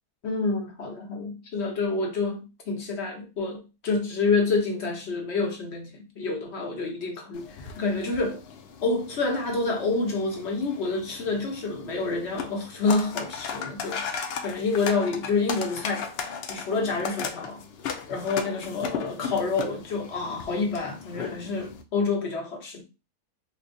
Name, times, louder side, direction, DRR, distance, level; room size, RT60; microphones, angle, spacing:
voice 1, 0.2-7.5 7.8-8.4 8.8-16.1 16.5-17.6 18.1-22.8, left 3 dB, 55° left, 1.0 m, -28 dB
sound 1, 7.3-21.8, left 6 dB, 75° left, 0.5 m, -37 dB
4.4 x 2.2 x 2.5 m
omnidirectional pair, 1.6 m